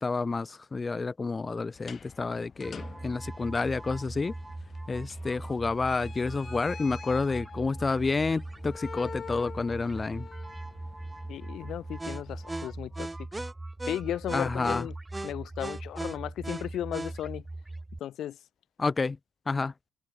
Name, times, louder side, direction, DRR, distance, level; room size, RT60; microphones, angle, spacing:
voice 1, 0.0-4.3 4.9-10.3 14.3-14.9 18.8-19.2 19.5-19.7, left 4 dB, 30° left, 0.6 m, -29 dB
sound 1, 1.7-12.6, left 6 dB, 45° left, 4.1 m, -47 dB
sound 2, 2.6-18.0, right 2 dB, 15° right, 4.6 m, -39 dB
voice 2, 11.3-13.1 13.9-14.9 15.2-17.4 18.0-18.4, left 11 dB, 75° left, 1.2 m, -35 dB
cardioid pair, 90°, 0 cm